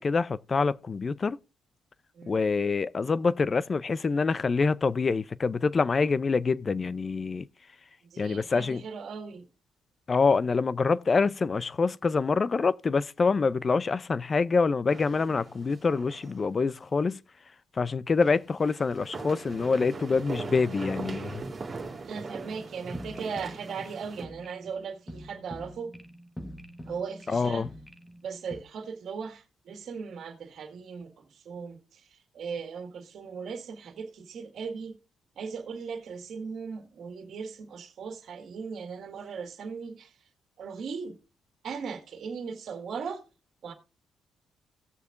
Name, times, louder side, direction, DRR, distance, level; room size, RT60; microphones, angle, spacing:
voice 1, 0.0-1.4 2.3-7.5 8.2-8.8 10.1-17.2 17.8-21.4 27.3-27.7, left 4 dB, 35° left, 0.5 m, -26 dB
voice 2, 8.0-9.5 22.0-25.9 26.9-27.7 28.2-35.0 35.4-40.1 40.6-41.2 41.6-43.2 43.6-43.7, right 5 dB, 65° right, 1.8 m, -38 dB
sound 1, 14.9-16.4 16.7-16.8 18.2-24.3, right 4 dB, 35° right, 2.3 m, -40 dB
sound 2, 22.4-28.6, equal, 10° left, 1.2 m, -45 dB
17.5 x 6.7 x 2.5 m
cardioid pair, 90°, 0 cm